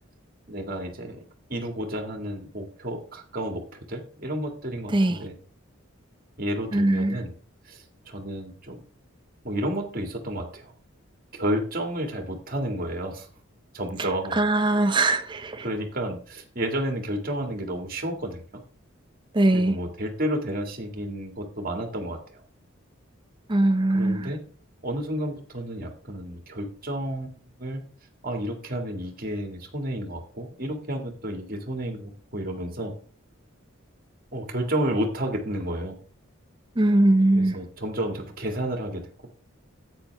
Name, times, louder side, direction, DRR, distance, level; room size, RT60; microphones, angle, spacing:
voice 1, 0.5-1.2 1.5-5.3 6.4-7.3 7.7-8.8 9.4-10.7 11.3-13.3 13.7-14.4 15.6-18.6 19.5-22.4 23.9-24.4 24.8-27.8 28.2-32.9 34.3-36.0 37.3-39.1, right 1 dB, 45° right, 2.0 m, -31 dB
voice 2, 6.7-7.2 14.3-15.6 19.3-19.8 23.5-24.3 36.8-37.6, right 2 dB, 25° right, 0.7 m, -21 dB
10.0 x 8.6 x 3.4 m
head